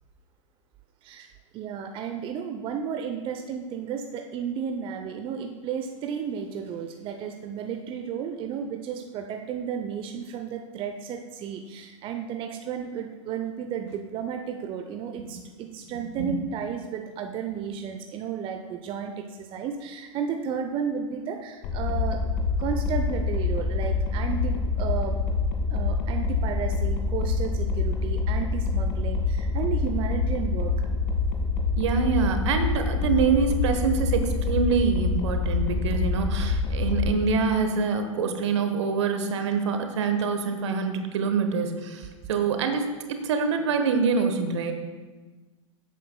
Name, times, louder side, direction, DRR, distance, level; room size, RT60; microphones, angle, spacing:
voice 1, 1.5-22.2 22.6-25.2 25.7-30.7, right 7 dB, 30° right, 5 dB, 0.7 m, -33 dB
sound 1, 21.6-37.1, left 4 dB, 50° left, 1.8 m, -26 dB
voice 2, 31.8-44.7, right 5 dB, 60° right, 7 dB, 1.1 m, -25 dB
16.0 x 8.3 x 2.2 m, 1.3 s
figure-of-eight pair, 95°, 16 cm